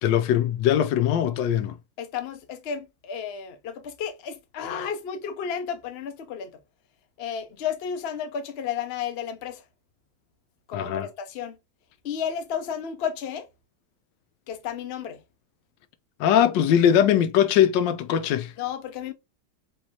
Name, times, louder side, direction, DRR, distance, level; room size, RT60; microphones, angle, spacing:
voice 1, 0.0-1.7 10.7-11.1 16.2-18.5, left 10 dB, 85° left, 1.2 m, -21 dB
voice 2, 2.0-6.5 7.2-9.6 10.7-11.6 12.0-13.5 14.5-15.2 18.6-19.1, left 8 dB, 60° left, 0.6 m, -32 dB
4.5 x 3.1 x 2.8 m
omnidirectional pair, 1.9 m